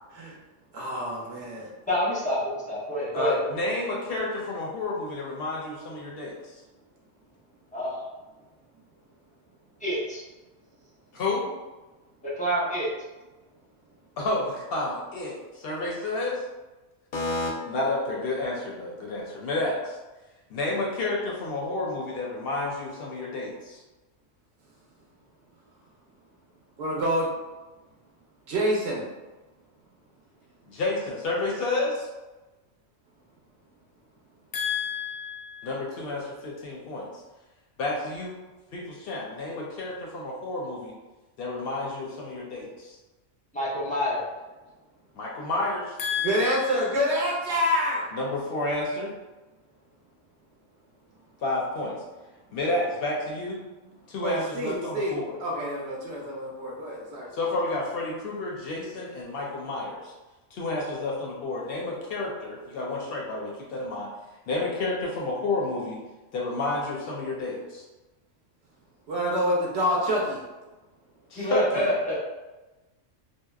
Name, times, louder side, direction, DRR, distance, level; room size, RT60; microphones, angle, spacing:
voice 1, 0.7-1.7 26.8-27.3 28.5-29.1 46.2-48.1 54.2-57.3 69.1-70.4, equal, 65° right, -2 dB, 0.8 m, -27 dB
voice 2, 1.9-3.5 7.7-8.0 9.8-10.2 12.4-12.9 43.5-44.2 71.4-72.2, equal, 10° left, -8 dB, 0.5 m, -27 dB
voice 3, 3.1-6.6 11.1-11.5 14.2-16.4 17.1-20.0 20.5-23.8 30.7-32.1 34.5-37.1 37.8-38.4 38.7-40.9 41.4-43.0 45.1-47.1 48.1-49.1 51.4-52.0 52.5-53.6 54.1-55.3 57.3-60.1 60.5-64.1 64.5-66.0 66.3-67.8 71.3-71.9, left 2 dB, 65° left, -2 dB, 0.7 m, -30 dB
2.7 x 2.0 x 2.2 m, 1.1 s
omnidirectional pair, 1.3 m